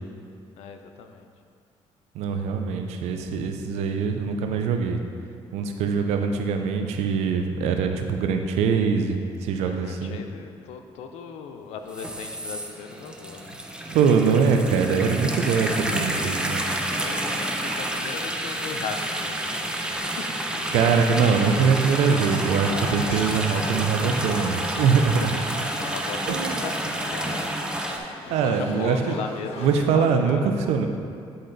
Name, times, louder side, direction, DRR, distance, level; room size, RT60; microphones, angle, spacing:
voice 1, 0.6-1.3 3.2-3.3 9.6-14.2 17.0-20.8 25.0-25.5 25.8-27.5 28.3-30.9, left 6 dB, 90° left, 6 dB, 0.5 m, -38 dB
voice 2, 2.1-5.0 5.5-10.2 13.9-16.7 20.7-25.3 26.3-26.6 28.3-29.1 29.6-30.4 30.7-30.9, right 6 dB, 90° right, 5 dB, 0.5 m, -23 dB
sound 1, 11.9-28.0, right 1 dB, 10° right, 0.7 m, -29 dB
sound 2, 21.3-29.8, left 2 dB, 70° left, 1.2 m, -39 dB
9.6 x 3.9 x 3.9 m, 2.3 s
cardioid pair, 75°, 11 cm